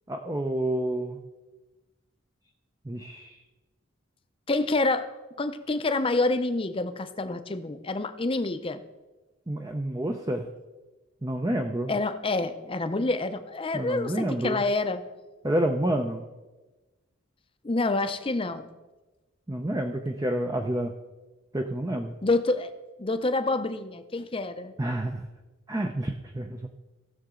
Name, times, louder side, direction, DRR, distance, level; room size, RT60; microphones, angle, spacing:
voice 1, 0.1-1.2 2.9-3.3 9.5-10.5 11.2-11.9 13.7-14.6 15.4-16.3 19.5-20.9 21.5-22.1 24.8-25.2 25.7-26.6, right 1 dB, 15° right, 4 dB, 0.5 m, -29 dB
voice 2, 4.5-5.1 5.4-8.8 11.9-15.0 17.6-18.7 22.2-22.7 23.0-24.8, left 2 dB, 25° left, 10 dB, 0.6 m, -27 dB
17.5 x 6.7 x 3.7 m, 1.2 s
head